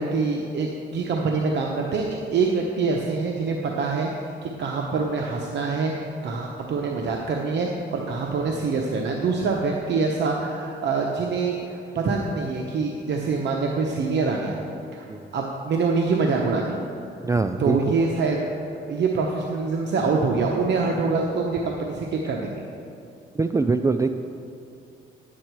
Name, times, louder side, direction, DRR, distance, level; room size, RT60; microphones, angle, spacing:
voice 1, 0.0-4.1 4.4-14.6 14.9-15.1 15.3-16.8 17.6-18.4 18.8-22.6, right 4 dB, 60° right, 0 dB, 0.9 m, -25 dB
voice 2, 17.2-17.9 23.3-24.1, right 3 dB, 15° right, 8 dB, 0.3 m, -23 dB
10.5 x 8.6 x 4.6 m, 2.5 s
cardioid pair, 90°, 20 cm